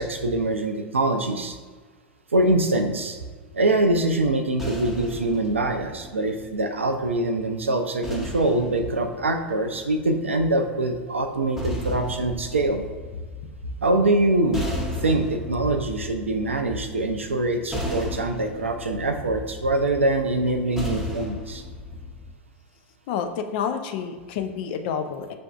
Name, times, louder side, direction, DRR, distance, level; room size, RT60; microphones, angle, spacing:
voice 1, 0.0-1.6 2.3-3.2 3.5-12.8 13.8-14.7 15.0-21.6, right 2 dB, 85° right, 6 dB, 0.4 m, -24 dB
sound 1, 4.2-7.1 8.0-10.3 11.2-22.3, left 1 dB, 5° right, 0.7 m, -35 dB
voice 2, 23.1-25.4, left 7 dB, 50° left, 6 dB, 0.4 m, -29 dB
6.6 x 2.5 x 2.3 m, 1.4 s
figure-of-eight pair, 95°, 7 cm